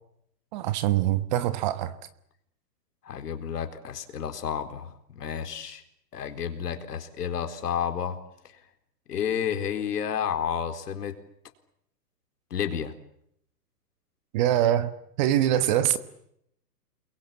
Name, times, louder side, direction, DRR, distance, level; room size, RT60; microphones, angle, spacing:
voice 1, 0.5-1.9 14.3-14.9 15.2-16.0, right 12 dB, 25° right, 1.3 m, -23 dB
voice 2, 3.0-5.8 6.1-8.2 9.1-11.1 12.5-12.9, left 8 dB, 70° left, 4.3 m, -31 dB
29.0 x 22.0 x 8.7 m
hypercardioid pair, 160°, 49 cm